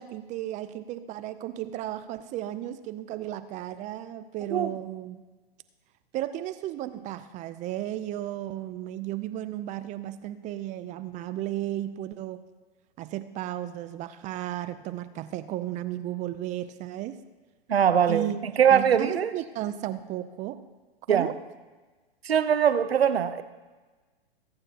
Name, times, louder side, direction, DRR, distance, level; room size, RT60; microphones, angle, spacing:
voice 1, 0.0-5.2 6.1-12.4 13.0-17.2 18.1-18.4 18.7-20.6 21.1-21.3, right 13 dB, 25° right, 13 dB, 0.5 m, -34 dB
voice 2, 17.7-19.3 21.1-21.3 22.2-23.4, right 8 dB, 85° right, 12 dB, 0.9 m, -22 dB
22.5 x 8.8 x 2.9 m, 1.3 s
hypercardioid pair, 120°, 30 cm